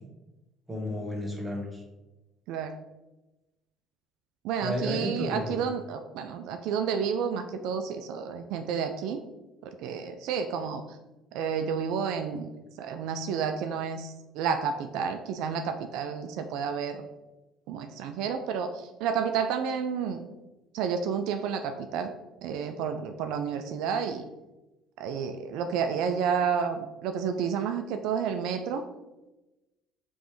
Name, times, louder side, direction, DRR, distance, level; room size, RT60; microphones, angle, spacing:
voice 1, 0.7-1.8 4.6-5.6, left 1 dB, 15° right, 0 dB, 1.3 m, -32 dB
voice 2, 4.4-9.2 9.6-11.0 11.3-12.5 12.8-17.1 17.7-20.3 20.7-22.1 22.4-24.3 25.0-28.8, right 6 dB, 80° right, 7 dB, 0.3 m, -30 dB
5.1 x 3.1 x 3.1 m, 1.0 s
supercardioid pair, 85°, 0 cm